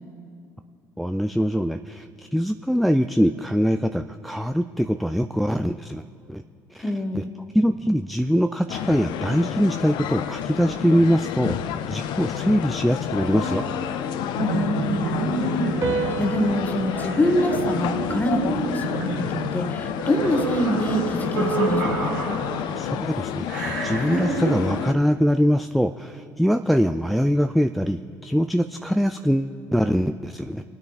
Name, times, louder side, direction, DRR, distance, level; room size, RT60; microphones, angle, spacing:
voice 1, 1.0-6.0 6.3-6.4 6.7-7.2 7.5-13.6 22.8-30.6, equal, ahead, 8 dB, 0.4 m, -23 dB
voice 2, 6.8-7.3 14.4-22.2, equal, 20° left, 6 dB, 1.7 m, -26 dB
sound 1, 8.7-24.9, left 10 dB, 65° left, 0.5 m, -30 dB
sound 2, 13.3-15.1 15.8-18.4, right 5 dB, 35° right, 1.5 m, -33 dB
sound 3, 14.4-22.9 23.5-24.6, right 3 dB, 85° right, 1.6 m, -29 dB
27.5 x 9.4 x 2.5 m, 2.6 s
hypercardioid pair, 60°, 8 cm